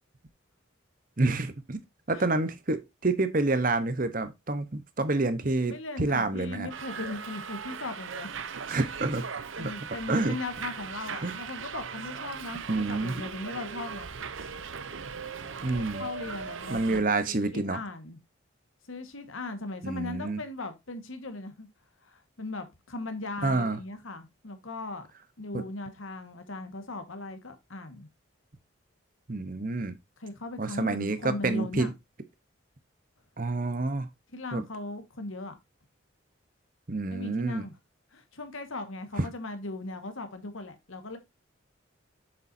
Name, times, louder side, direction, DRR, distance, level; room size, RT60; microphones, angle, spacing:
voice 1, 1.2-1.8 2.1-6.7 8.7-9.3 9.6-9.7 10.1-10.4 11.2-11.4 12.7-13.2 15.6-16.0 16.7-17.8 19.8-20.4 23.4-23.8 25.5-25.6 29.3-30.0 30.6-31.9 33.4-34.1 34.5-34.6 36.9-37.7 39.2-39.3, right 2 dB, 40° right, 1.0 m, -28 dB
voice 2, 5.6-8.3 9.6-14.1 15.7-18.2 18.9-21.7 22.0-25.1 25.4-28.1 30.2-31.9 34.3-35.6 37.1-37.8 38.1-41.2, left 2 dB, 80° left, 1.6 m, -38 dB
Subway metro underground, 6.7-17.0, right 6 dB, 70° right, 0.7 m, -39 dB
7.7 x 6.8 x 2.7 m
head